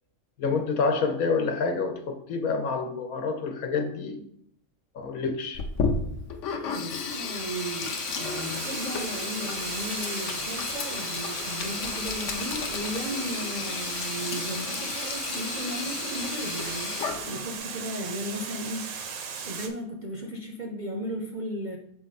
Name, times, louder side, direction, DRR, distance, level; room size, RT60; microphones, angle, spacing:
voice 1, 0.4-4.2 4.9-5.6, left 4 dB, 80° left, 5 dB, 1.3 m, -28 dB
Sink (filling or washing), 5.5-17.6, left 5 dB, 65° left, 1.0 m, -33 dB
voice 2, 6.7-19.0 19.4-21.8, equal, 45° right, 1 dB, 0.7 m, -35 dB
Water, 7.1-19.7, right 6 dB, 85° right, 1.3 m, -37 dB
7.0 x 4.2 x 4.1 m, 0.70 s
omnidirectional pair, 1.5 m